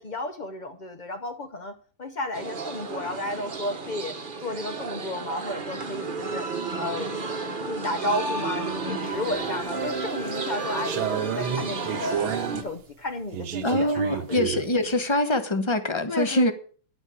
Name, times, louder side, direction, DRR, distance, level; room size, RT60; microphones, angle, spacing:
voice 1, 0.0-6.5 6.8-7.3 7.7-12.3 12.6-14.4 16.1-16.5, left 2 dB, 65° left, 0.4 m, -33 dB
sound 1, 2.3-12.6, right 4 dB, 30° right, 1.1 m, -32 dB
sound 2, 9.1-9.8 10.3-12.7 13.3-14.7, right 9 dB, 80° right, 1.7 m, -30 dB
voice 2, 13.6-16.5, left 1 dB, 20° left, 0.8 m, -24 dB
10.5 x 8.5 x 6.2 m
omnidirectional pair, 2.2 m